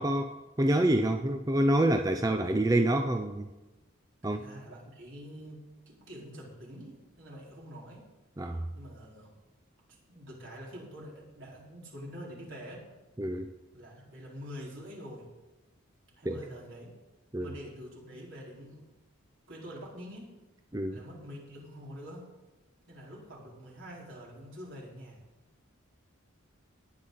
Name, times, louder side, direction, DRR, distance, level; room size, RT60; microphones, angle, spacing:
voice 1, 0.0-3.5 4.2-4.4 8.4-8.7 13.2-13.5 16.3-16.4 17.3-17.5 20.7-21.0, right 1 dB, 15° right, 6 dB, 0.4 m, -27 dB
voice 2, 4.2-8.0 8.7-9.3 10.1-12.9 13.7-15.2 16.2-16.9 17.4-18.8 19.5-20.3 20.9-22.3 22.9-25.2, equal, 65° right, -4 dB, 4.4 m, -46 dB
19.0 x 9.3 x 4.1 m, 1.1 s
head